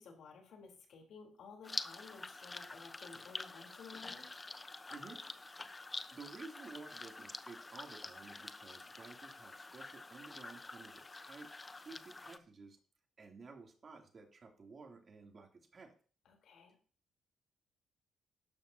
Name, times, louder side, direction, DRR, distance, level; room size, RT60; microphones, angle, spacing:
voice 1, 0.0-4.3 16.3-16.8, left 5 dB, 70° left, 2 dB, 3.5 m, -55 dB
sound 1, 1.6-12.4, left 3 dB, 20° left, 0.8 m, -47 dB
voice 2, 4.9-5.8 6.1-11.5 11.7-12.8 13.2-15.9, right 4 dB, 40° right, 1 dB, 2.8 m, -53 dB
12.5 x 11.5 x 2.8 m, 0.41 s
cardioid pair, 90°, 0 cm